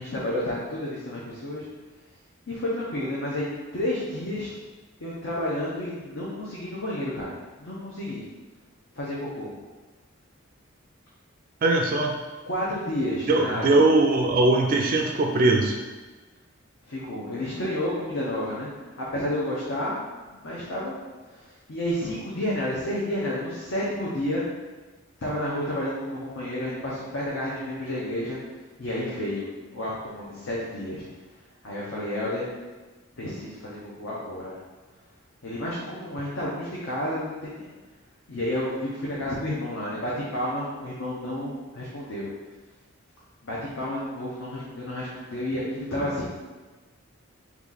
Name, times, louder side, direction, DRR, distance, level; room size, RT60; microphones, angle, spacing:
voice 1, 0.0-1.7 2.5-4.5 5.0-8.2 8.9-9.5 12.5-13.8 16.9-18.7 19.0-19.9 20.3-20.9 21.3-21.4 21.7-24.4 25.2-28.4 28.8-31.1 31.6-32.5 33.2-34.5 35.4-37.7 38.3-42.3 43.4-46.3, left 1 dB, 65° left, -6 dB, 0.7 m, -30 dB
voice 2, 11.6-12.1 13.3-15.8, right 2 dB, 40° right, 2 dB, 0.3 m, -20 dB
3.5 x 2.9 x 3.9 m, 1.3 s
head